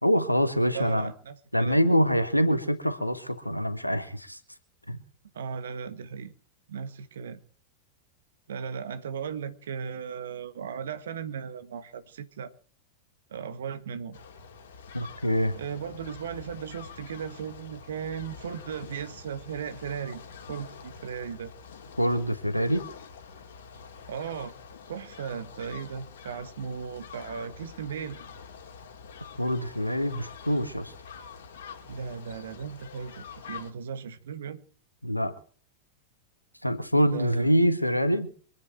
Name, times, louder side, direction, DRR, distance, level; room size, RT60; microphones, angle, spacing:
voice 1, 0.0-1.1 1.5-4.4 4.9-5.0 14.9-15.6 22.0-22.8 29.4-30.9 35.0-35.3 36.6-38.3, equal, 90° left, 1.7 m, -25 dB
voice 2, 0.7-1.8 5.3-6.3 6.7-7.4 8.5-12.5 13.3-14.2 15.5-21.5 24.1-24.5 24.9-28.2 31.8-34.6 37.1-37.6, right 7 dB, 65° right, 1.6 m, -37 dB
sound 1, 14.1-33.7, left 6 dB, 60° left, 2.6 m, -46 dB
25.0 x 10.5 x 4.6 m
figure-of-eight pair, 90°, 0 cm